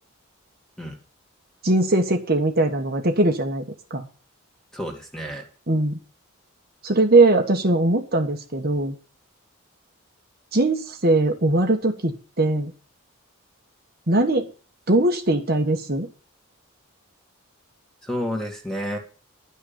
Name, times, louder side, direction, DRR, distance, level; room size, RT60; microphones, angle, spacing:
voice 1, 1.6-3.6 3.9-4.1 5.7-6.0 6.8-8.9 10.5-12.7 14.1-14.5 14.9-16.1, right 2 dB, 45° right, 3 dB, 1.4 m, -20 dB
voice 2, 4.7-5.5 18.0-19.0, equal, ahead, 2 dB, 2.2 m, -30 dB
11.0 x 6.4 x 8.6 m, 0.38 s
head